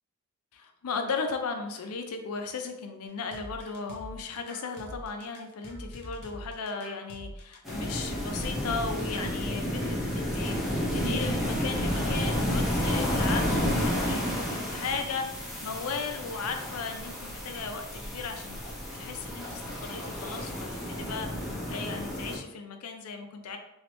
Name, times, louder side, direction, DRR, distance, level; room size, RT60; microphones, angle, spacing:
voice 1, 0.5-18.7 18.9-23.6, left 5 dB, 90° left, 5 dB, 0.5 m, -36 dB
sound 1, 3.3-9.4, equal, 50° left, 0.8 m, -44 dB
sound 2, 7.7-22.4, equal, ahead, 0.7 m, -31 dB
3.1 x 3.1 x 2.9 m, 0.86 s
head